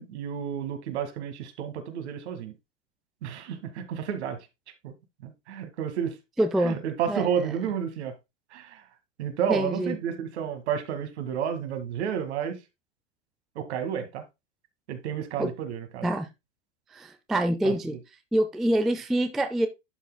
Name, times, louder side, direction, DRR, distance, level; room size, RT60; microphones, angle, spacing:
voice 1, 0.0-2.5 3.2-4.5 4.8-4.9 5.2-6.2 6.6-8.2 8.5-8.9 9.2-12.6 13.6-14.3 14.9-16.1 17.6-17.7, right 8 dB, 65° right, 2.0 m, -31 dB
voice 2, 6.4-6.8 7.1-7.2 9.5-10.0 15.4-15.5 16.0-16.3 16.9-18.0 18.3-19.7, right 1 dB, ahead, 0.3 m, -25 dB
11.0 x 6.0 x 2.2 m
hypercardioid pair, 110°, 36 cm